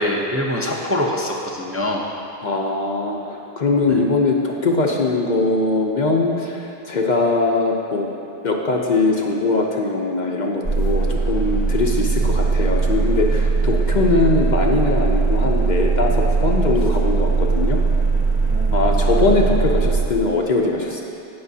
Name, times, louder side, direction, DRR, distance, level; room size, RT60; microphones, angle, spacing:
voice 1, 0.0-2.0 3.9-4.0 18.5-19.1, left 1 dB, 15° right, -2 dB, 0.6 m, -24 dB
voice 2, 2.4-8.1 8.4-17.8 18.7-21.0, left 3 dB, 50° left, 0 dB, 0.8 m, -21 dB
sound 1, 10.6-20.1, right 4 dB, 45° right, 0.8 m, -19 dB
17.5 x 6.0 x 2.8 m, 2.9 s
omnidirectional pair, 1.0 m